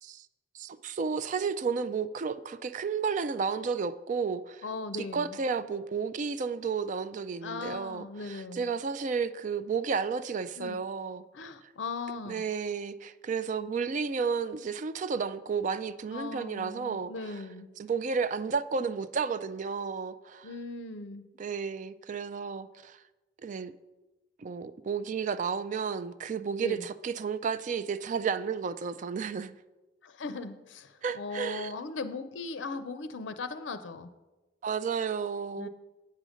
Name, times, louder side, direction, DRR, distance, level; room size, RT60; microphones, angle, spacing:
voice 1, 0.5-4.7 4.9-11.2 11.6-11.7 12.3-17.4 17.8-20.5 21.4-23.0 23.4-23.7 24.4-29.5 31.0-31.7 34.6-35.7, right 5 dB, 40° right, 0.3 m, -32 dB
voice 2, 4.6-5.4 7.4-8.7 10.6-10.8 11.3-12.4 16.1-17.7 20.4-21.2 26.6-26.9 30.0-34.1 35.6-35.7, left 3 dB, 80° left, 0.5 m, -38 dB
8.4 x 5.0 x 6.3 m
head